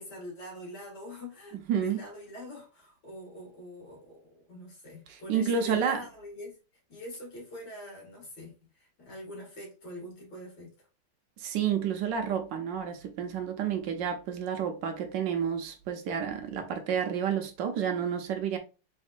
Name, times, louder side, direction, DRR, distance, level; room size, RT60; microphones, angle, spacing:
voice 1, 0.0-6.6 6.9-10.7, equal, 60° left, 2.5 m, -44 dB
voice 2, 1.7-2.0 5.3-6.0 11.4-18.6, right 7 dB, 70° right, 1.2 m, -30 dB
4.3 x 3.5 x 2.4 m
omnidirectional pair, 2.3 m